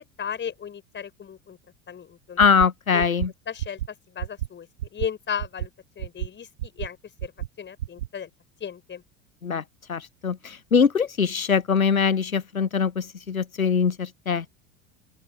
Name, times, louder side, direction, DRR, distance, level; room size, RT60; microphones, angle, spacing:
voice 1, 0.2-1.6 1.9-2.4 2.9-3.1 3.5-5.7 6.0-7.3 7.6-8.3 8.6-9.0, left 8 dB, 25° left, 5.9 m, -35 dB
voice 2, 2.4-3.3 9.4-9.6 9.9-14.4, left 6 dB, 90° left, 0.8 m, -22 dB
sound 1, 2.4-2.7 3.0-3.3 3.6-3.9 4.2-4.5 4.8-5.1 5.4-5.7 6.0-6.3 6.6-6.9 7.2-7.5 7.8-8.1, right 13 dB, 65° right, 1.9 m, -30 dB
open air
figure-of-eight pair, 75°, 41 cm